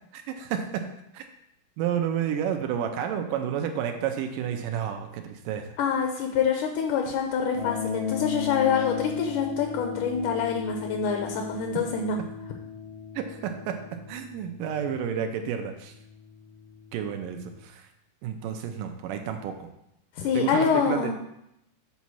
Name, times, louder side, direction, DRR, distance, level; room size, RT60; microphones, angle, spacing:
voice 1, 0.1-0.9 1.1-1.2 1.8-5.8 13.2-13.8 14.1-15.9 16.9-17.9 18.2-19.6 20.3-21.1, right 8 dB, 85° right, 5 dB, 2.2 m, -30 dB
voice 2, 5.8-12.2 20.2-21.1, left 6 dB, 75° left, 3 dB, 2.0 m, -26 dB
sound 1, 7.5-17.6, left 8 dB, 30° left, 0.5 m, -37 dB
8.1 x 4.1 x 6.1 m, 0.81 s
omnidirectional pair, 4.0 m